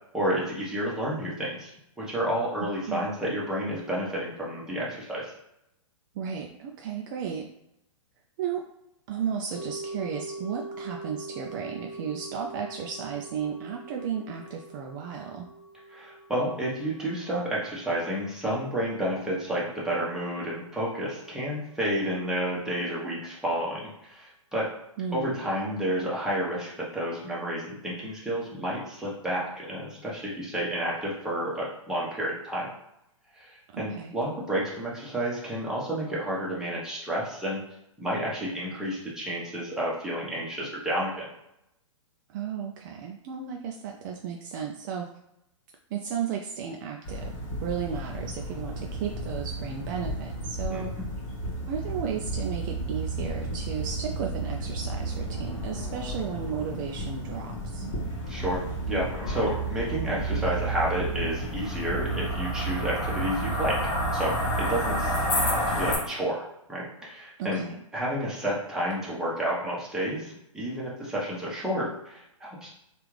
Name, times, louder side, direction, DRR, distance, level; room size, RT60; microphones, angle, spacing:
voice 1, 0.1-1.7 2.0-5.3 15.9-24.7 25.1-32.7 33.3-37.6 38.0-41.3 50.7-50.8 58.3-67.6 67.9-72.7, right 1 dB, 5° right, -6 dB, 1.0 m, -30 dB
voice 2, 6.2-7.5 8.4-8.7 9.1-15.5 25.0-25.4 33.7-34.1 42.3-45.1 45.9-47.3 47.6-50.9 51.7-57.9 67.4-67.8, right 7 dB, 40° right, 1 dB, 0.4 m, -34 dB
sound 1, 9.6-19.8 20.1-20.2, right 2 dB, 85° left, 0.6 m, -43 dB
sound 2, 47.0-66.0, right 1 dB, 40° left, 1.1 m, -31 dB
3.3 x 2.4 x 3.2 m, 0.83 s
hypercardioid pair, 120°, 17 cm